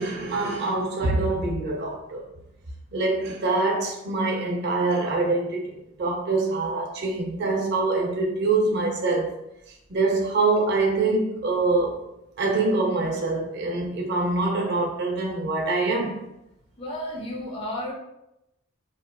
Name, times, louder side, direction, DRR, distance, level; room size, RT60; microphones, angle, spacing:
voice 1, 0.0-2.3 2.9-9.3 9.7-12.0 12.4-16.3, right 3 dB, 55° right, 0.4 m, -25 dB
voice 2, 16.8-17.9, left 1 dB, 25° left, 0.5 m, -32 dB
2.9 x 2.3 x 2.2 m
head